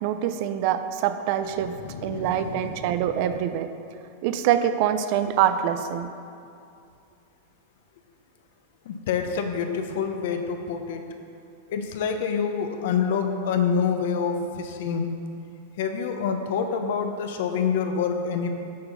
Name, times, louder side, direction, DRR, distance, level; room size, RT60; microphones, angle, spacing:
voice 1, 0.0-3.7 4.2-6.1, right 10 dB, 50° right, 10 dB, 0.4 m, -25 dB
voice 2, 1.8-3.0 8.9-11.0 11.7-15.1 15.8-18.5, left 6 dB, 65° left, 6 dB, 0.8 m, -27 dB
8.5 x 4.4 x 5.4 m, 2.5 s
supercardioid pair, 140°, 0 cm